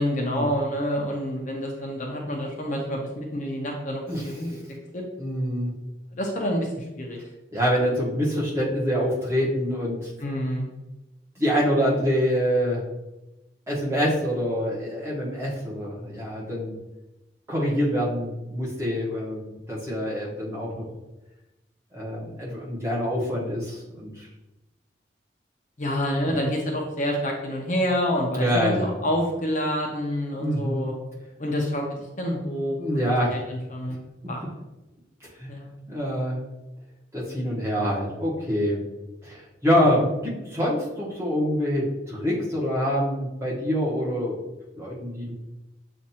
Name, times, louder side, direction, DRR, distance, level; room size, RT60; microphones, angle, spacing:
voice 1, 0.0-4.6 4.9-5.0 6.1-7.2 10.2-10.7 25.8-30.9 31.4-31.9 32.2-34.0 34.3-34.4 35.5-35.7, equal, 40° left, 0 dB, 0.7 m, -28 dB
voice 2, 5.2-5.7 7.5-10.1 11.4-12.8 13.7-16.7 17.5-20.8 21.9-24.3 26.3-26.4 28.3-28.9 30.4-30.8 32.8-33.4 35.4-35.5 35.9-36.4 37.1-38.8 39.2-44.4 44.8-45.3, equal, 15° right, -6 dB, 1.2 m, -25 dB
7.3 x 2.5 x 2.8 m, 1.0 s
head